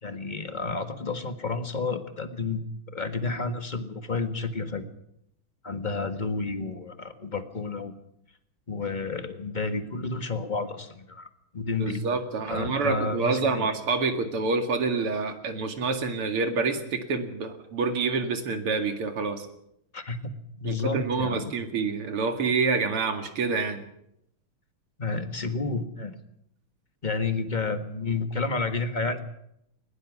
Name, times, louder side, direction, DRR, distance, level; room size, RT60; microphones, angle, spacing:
voice 1, 0.0-2.7 2.9-4.9 5.6-7.9 8.7-11.3 11.5-12.0 12.5-13.7 19.9-21.5 25.0-26.2 27.0-29.2, left 3 dB, 25° left, 8 dB, 1.4 m, -31 dB
voice 2, 11.8-19.5 20.6-23.8, right 4 dB, 80° right, 6 dB, 3.1 m, -27 dB
21.5 x 20.5 x 6.2 m, 0.76 s
omnidirectional pair, 2.4 m